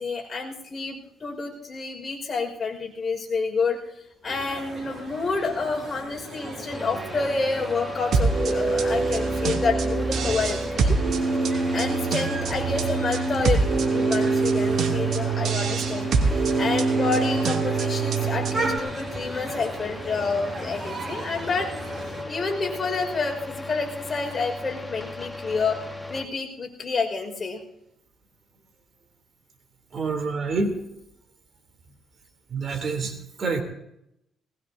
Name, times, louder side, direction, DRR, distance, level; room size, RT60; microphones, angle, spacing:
voice 1, 0.0-3.8 4.2-11.0 11.7-21.7 22.3-25.8 26.1-27.6, left 4 dB, 35° left, 1 dB, 5.6 m, -29 dB
sound 1, 4.3-22.2, right 2 dB, 30° right, 6.9 m, -37 dB
sound 2, 6.7-26.3, left 2 dB, 10° left, 1.7 m, -36 dB
sound 3, 8.1-18.8, right 4 dB, 65° right, 2.8 m, -24 dB
voice 2, 29.9-30.8 32.5-33.6, right 4 dB, 50° right, 4 dB, 3.4 m, -27 dB
20.5 x 20.0 x 2.8 m, 0.78 s
cardioid pair, 95°, 0 cm